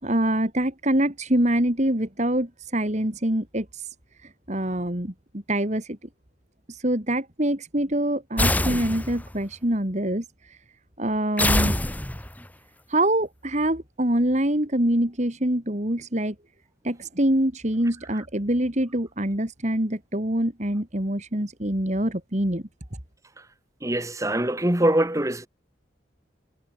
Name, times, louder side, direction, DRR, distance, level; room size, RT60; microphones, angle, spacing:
voice 1, 0.0-3.9 4.2-6.1 6.7-10.6 11.0-11.8 12.9-16.3 16.8-22.6, right 1 dB, 35° right, 2.9 m, -25 dB
sound 1, 8.4-9.4 11.4-12.5, left 1 dB, 10° left, 1.3 m, -24 dB
voice 2, 23.8-25.5, right 1 dB, 15° right, 1.6 m, -23 dB
head